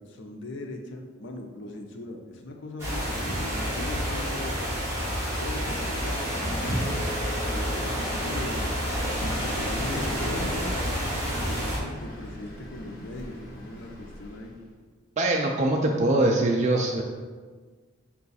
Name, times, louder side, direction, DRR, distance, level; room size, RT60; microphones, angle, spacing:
voice 1, 0.0-4.7 5.4-8.7 9.2-14.5, left 1 dB, 60° left, 2 dB, 0.6 m, -39 dB
sound 1, 2.8-11.8, equal, 15° right, 1.5 m, -29 dB
sound 2, 6.7-12.1, left 1 dB, 10° left, 0.6 m, -43 dB
Vehicle, 8.3-14.7, equal, 45° left, 1.1 m, -40 dB
voice 2, 15.2-17.0, right 2 dB, 35° right, 0 dB, 0.3 m, -23 dB
5.5 x 2.3 x 4.0 m, 1.4 s
head